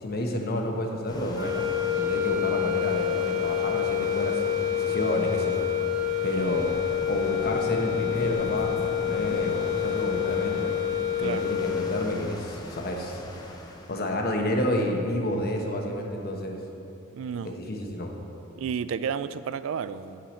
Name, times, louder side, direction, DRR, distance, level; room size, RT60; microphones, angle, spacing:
voice 1, 0.0-5.6 6.2-6.7 7.0-10.7 11.2-13.2 13.9-16.6 17.4-18.1, left 1 dB, 50° left, 2 dB, 1.0 m, -30 dB
sound 1, 1.1-14.0, left 1 dB, 20° left, 0.8 m, -41 dB
sound 2, 1.3-12.2, left 10 dB, 20° right, 1.0 m, -28 dB
voice 2, 17.1-17.6 18.6-20.2, right 7 dB, 75° right, 14 dB, 0.3 m, -31 dB
8.8 x 4.9 x 7.3 m, 2.8 s
head